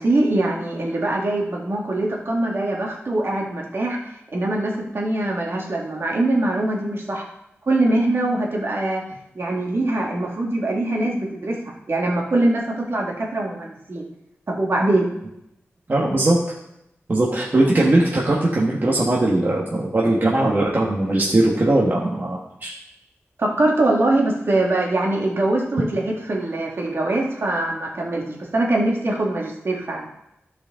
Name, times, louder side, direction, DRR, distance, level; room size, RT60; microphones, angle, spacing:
voice 1, 0.0-4.0 4.3-7.2 7.7-9.0 9.4-11.6 11.9-14.1 14.5-15.1 23.4-30.1, right 2 dB, 55° right, -1 dB, 1.9 m, -22 dB
voice 2, 15.9-16.4 17.1-22.7, right 2 dB, 40° right, -4 dB, 1.4 m, -19 dB
15.0 x 5.0 x 3.7 m, 0.83 s
wide cardioid pair, 105°, 5 cm